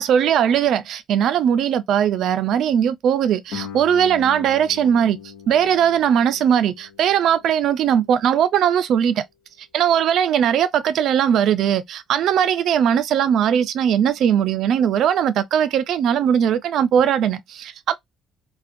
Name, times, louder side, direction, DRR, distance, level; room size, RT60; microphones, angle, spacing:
voice 1, 0.0-5.2 5.5-9.2 9.7-18.0, right 9 dB, 70° right, 0.3 m, -19 dB
Guitar, 3.5-8.9, left 8 dB, 70° left, 0.6 m, -40 dB
2.5 x 2.1 x 2.4 m
cardioid pair, 85°, 0 cm